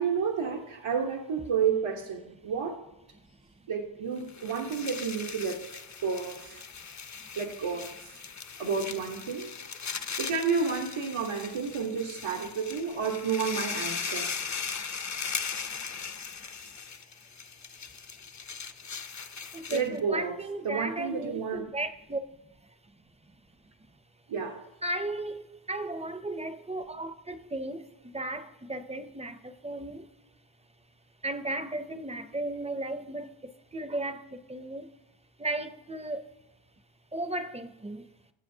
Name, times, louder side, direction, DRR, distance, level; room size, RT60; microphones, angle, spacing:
voice 1, 0.0-2.8 3.7-6.6 7.4-8.2 8.6-9.5 10.2-14.3 19.7-20.3 20.6-21.6 24.3-24.6, right 6 dB, 85° right, 1.1 m, -31 dB
sound 1, 4.2-20.0, left 6 dB, 40° left, 0.5 m, -38 dB
voice 2, 19.5-22.2 24.8-25.4 25.7-29.4 29.6-30.0 31.2-33.3 33.7-34.8 35.4-36.2 37.1-38.0, right 2 dB, 15° right, 0.5 m, -35 dB
20.0 x 7.8 x 2.7 m
wide cardioid pair, 130°, 48 cm